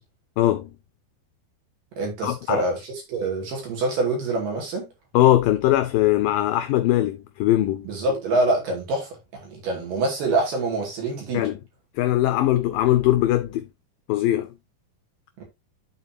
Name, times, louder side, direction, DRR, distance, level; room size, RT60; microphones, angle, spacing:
voice 1, 0.4-0.7 2.2-2.6 5.1-7.9 11.3-11.6 12.0-13.7 14.1-14.5, left 14 dB, 85° left, 1.9 m, -21 dB
voice 2, 2.0-4.9 7.9-9.1 9.4-11.5 15.4-15.5, right 2 dB, 60° right, 3.8 m, -25 dB
12.0 x 4.0 x 2.7 m
omnidirectional pair, 4.5 m